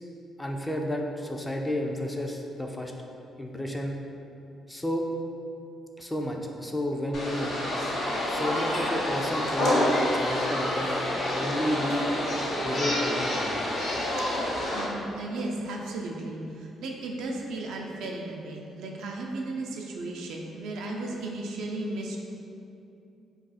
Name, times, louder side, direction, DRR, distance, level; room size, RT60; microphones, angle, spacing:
voice 1, 0.4-2.9 3.4-4.0 4.7-5.1 6.0-7.6 8.3-11.0 11.3-12.1 12.6-13.6, left 1 dB, 10° left, 2 dB, 0.3 m, -31 dB
sound 1, 7.1-14.8, left 1 dB, 65° left, 0.8 m, -28 dB
voice 2, 14.7-22.2, right 2 dB, 85° right, 0 dB, 0.3 m, -35 dB
2.3 x 2.3 x 3.9 m, 2.6 s
cardioid pair, 90°, 0 cm